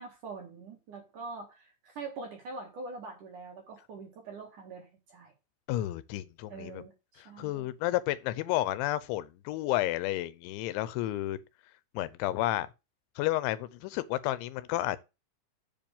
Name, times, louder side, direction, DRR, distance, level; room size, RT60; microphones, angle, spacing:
voice 1, 0.0-5.3 6.5-7.7, right 3 dB, 55° right, 2.5 m, -44 dB
voice 2, 5.7-6.8 7.4-11.4 11.9-12.7 13.2-15.0, left 15 dB, 85° left, 3.1 m, -31 dB
7.4 x 5.2 x 7.1 m
omnidirectional pair, 5.3 m